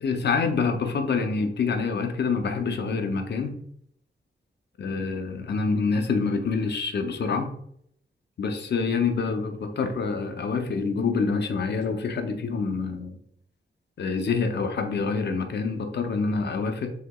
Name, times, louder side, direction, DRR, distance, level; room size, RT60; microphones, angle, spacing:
voice 1, 0.0-3.6 4.8-7.5 8.4-13.2 14.0-16.9, left 4 dB, 60° left, 5 dB, 0.6 m, -26 dB
6.3 x 2.8 x 2.3 m, 0.69 s
wide cardioid pair, 165°, 19 cm